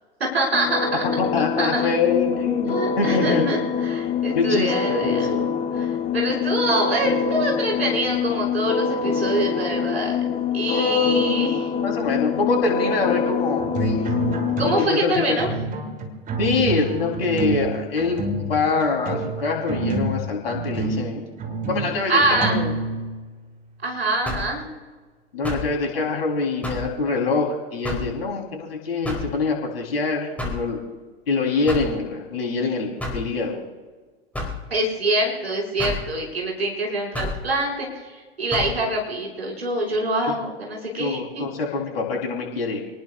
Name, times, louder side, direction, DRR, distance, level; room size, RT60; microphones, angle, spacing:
voice 1, 0.2-1.0 1.5-1.9 2.7-5.3 5.7-10.2 10.5-11.6 14.6-15.5 22.1-22.6 23.8-24.6 34.7-41.5, right 1 dB, 75° right, -2 dB, 6.0 m, -25 dB
sound 1, 0.5-14.9, left 6 dB, 20° left, 1.0 m, -25 dB
voice 2, 1.2-3.5 4.3-5.5 10.7-11.5 11.8-14.1 14.6-15.4 16.4-21.2 21.7-22.7 25.3-30.8 31.3-33.6 40.3-40.4 41.0-42.8, left 4 dB, 70° left, 0 dB, 3.9 m, -24 dB
sound 2, 13.6-14.9 15.1-23.3, right 3 dB, 25° right, 3.0 m, -28 dB
sound 3, 24.3-24.6 25.4-25.7 26.6-26.9 27.8-28.1 29.0-29.3 30.4-30.7 31.7-32.0 33.0-33.3 34.3-34.6 35.8-36.1 37.1-37.4 38.5-38.7, left 2 dB, 5° left, 4.6 m, -29 dB
28.5 x 19.0 x 2.5 m, 1.4 s
figure-of-eight pair, 85°, 31 cm